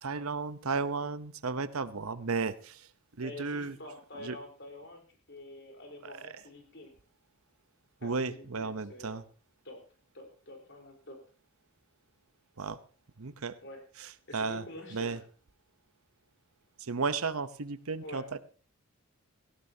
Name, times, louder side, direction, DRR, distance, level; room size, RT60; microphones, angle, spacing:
voice 1, 0.0-2.9 3.2-3.8 4.2-4.4 8.0-9.2 12.6-12.8 13.2-13.6 14.0-14.6 14.9-15.2 16.8-18.4, right 4 dB, 80° right, 13 dB, 0.9 m, -34 dB
voice 2, 3.2-6.9 8.0-9.2 9.6-9.8 10.1-11.2 13.6-13.8 14.3-15.2 18.0-18.4, left 1 dB, 55° left, 2 dB, 4.2 m, -47 dB
18.0 x 16.0 x 2.8 m, 0.38 s
head